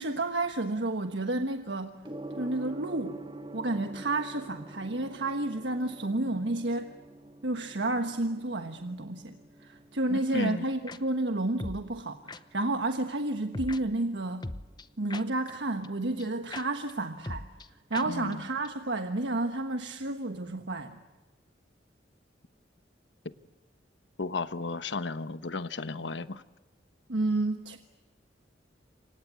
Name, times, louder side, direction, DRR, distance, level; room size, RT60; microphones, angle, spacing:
voice 1, 0.0-2.0 2.4-3.2 3.5-6.9 7.4-14.5 15.0-17.5 17.9-21.0 27.1-27.8, right 2 dB, 75° right, 6 dB, 1.4 m, -31 dB
Gong, 2.0-21.1, right 2 dB, 30° right, 1.8 m, -49 dB
voice 2, 10.1-10.7 18.1-18.4 24.2-26.4, left 3 dB, 85° left, 12 dB, 1.2 m, -34 dB
sound 1, 10.9-11.0 11.6-11.8 12.3-12.4 13.5-13.8 14.4-15.5 15.8-15.9 16.2-16.3 16.5-16.6 16.9-17.0 17.2-17.7 17.9-18.1 18.3-18.4 18.6-18.7, left 2 dB, 25° left, 0.8 m, -38 dB
28.5 x 25.0 x 8.2 m, 1.2 s
head